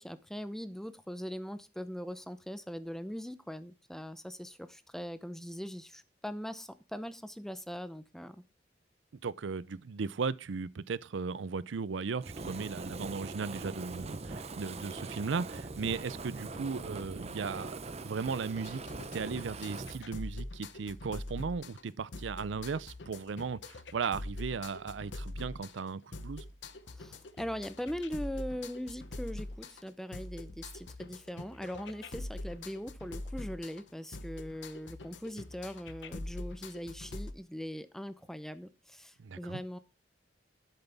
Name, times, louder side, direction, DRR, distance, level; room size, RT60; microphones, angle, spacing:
voice 1, 0.0-8.4 26.9-39.8, equal, ahead, 0.7 m, -41 dB
voice 2, 9.2-18.8 19.1-26.4 39.2-39.6, right 5 dB, 85° right, 0.5 m, -36 dB
Fire, 12.2-20.0, right 3 dB, 35° right, 0.8 m, -42 dB
sound 1, 18.6-37.3, left 2 dB, 75° left, 0.9 m, -44 dB
11.0 x 8.0 x 3.5 m
head